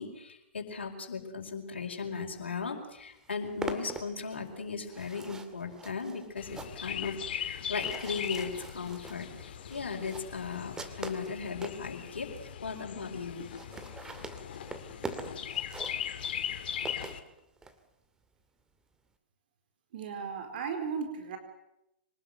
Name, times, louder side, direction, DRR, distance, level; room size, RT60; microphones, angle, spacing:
voice 1, 0.0-13.5, left 5 dB, 75° left, 2 dB, 4.9 m, -37 dB
sound 1, 2.6-2.7 3.0-11.8 12.4-12.5 12.7-12.8 13.0-13.1 13.4-17.7, right 3 dB, 10° right, 2.3 m, -43 dB
Chirp tweet, 6.4-17.2, left 9 dB, 60° left, 2.3 m, -39 dB
voice 2, 19.9-21.4, right 6 dB, 55° right, 6 dB, 4.6 m, -35 dB
25.0 x 20.0 x 8.0 m, 0.85 s
figure-of-eight pair, 120°, 6 cm